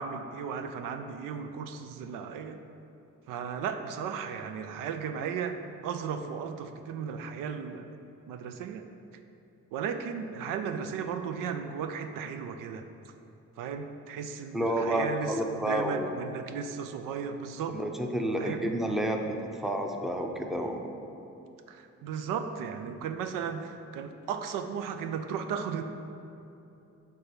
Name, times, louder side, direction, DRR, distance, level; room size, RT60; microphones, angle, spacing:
voice 1, 0.0-2.6 3.3-5.6 5.8-7.9 8.3-8.9 9.7-12.8 13.6-17.8 18.3-18.6 21.7-25.8, right 6 dB, 80° right, 8 dB, 0.5 m, -35 dB
voice 2, 14.5-16.1 17.7-19.2 19.6-20.8, right 1 dB, ahead, 3 dB, 0.6 m, -30 dB
6.7 x 3.4 x 5.7 m, 2.8 s
supercardioid pair, 65°, 32 cm